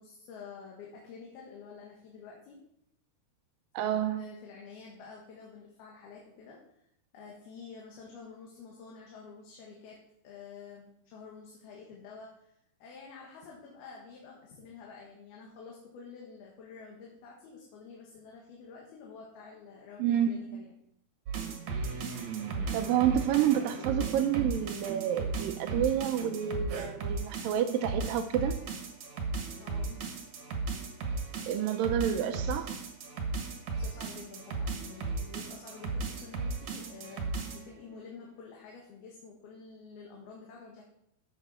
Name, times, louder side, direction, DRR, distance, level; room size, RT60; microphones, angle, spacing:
voice 1, 0.0-2.6 4.1-6.6 7.1-20.7 29.6-30.3 31.2-31.5 33.7-40.8, left 5 dB, 75° left, -2 dB, 3.5 m, -49 dB
voice 2, 3.7-4.2 20.0-20.6 22.7-28.6 31.5-32.7, right 10 dB, 80° right, 8 dB, 2.1 m, -29 dB
sound 1, 21.3-37.7, right 4 dB, 55° right, 2.3 m, -36 dB
11.5 x 8.0 x 4.3 m, 0.76 s
omnidirectional pair, 4.5 m